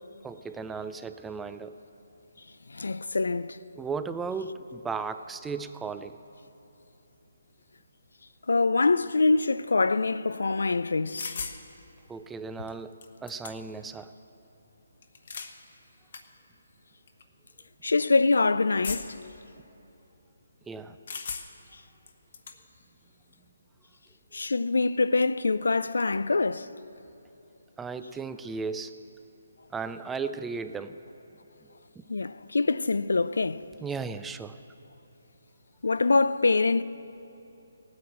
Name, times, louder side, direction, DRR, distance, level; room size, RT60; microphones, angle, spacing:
voice 1, 0.2-1.7 3.8-6.2 12.1-14.1 20.7-21.0 27.8-29.1 29.7-31.0 31.6-32.0 33.8-34.6, right 5 dB, 5° right, 0.4 m, -36 dB
voice 2, 2.7-3.6 8.5-11.3 17.8-19.2 24.3-26.7 32.1-33.7 35.8-36.8, left 3 dB, 80° left, 0.5 m, -24 dB
sound 1, 11.2-11.6 12.7-12.8 13.0-13.8 15.0-15.5 16.1-16.2 17.1-17.2 18.8-19.3 21.1-21.7 22.1-22.6, left 5 dB, 55° left, 1.3 m, -37 dB
17.0 x 9.6 x 7.8 m
hypercardioid pair, 155°, 0 cm